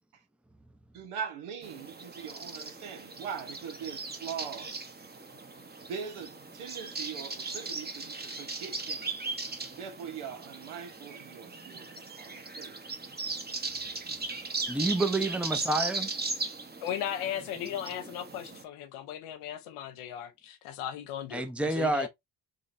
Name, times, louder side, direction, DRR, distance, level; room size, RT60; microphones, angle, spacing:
voice 1, 0.9-4.8 5.9-9.2 9.8-12.8 14.8-14.9, right 7 dB, 85° right, 1.2 m, -41 dB
sound 1, 1.6-18.6, right 3 dB, 20° right, 0.9 m, -38 dB
voice 2, 14.7-16.1 21.3-22.1, right 2 dB, 5° right, 0.6 m, -28 dB
voice 3, 16.8-22.1, left 10 dB, 90° left, 0.8 m, -37 dB
3.6 x 3.0 x 2.6 m
supercardioid pair, 65°, 49 cm